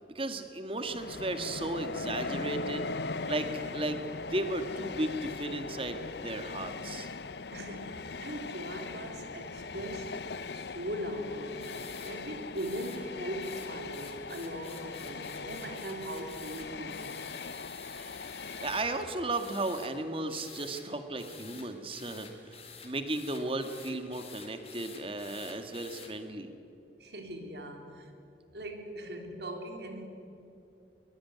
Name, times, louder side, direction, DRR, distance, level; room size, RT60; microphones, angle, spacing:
voice 1, 0.1-2.9 3.3-4.0 4.3-7.1 18.6-26.5, right 2 dB, 30° right, 8 dB, 1.9 m, -35 dB
Train, 0.8-19.7, left 4 dB, 65° left, 0.7 m, -40 dB
voice 2, 7.5-17.2 27.0-28.1 28.5-30.0, equal, 65° right, 4 dB, 3.4 m, -40 dB
sound 1, 11.6-12.1 12.5-13.0 13.4-18.9 19.3-19.9 20.3-20.8 21.2-26.1, left 6 dB, 35° left, 3.8 m, -49 dB
23.5 x 22.5 x 9.6 m, 2.7 s
head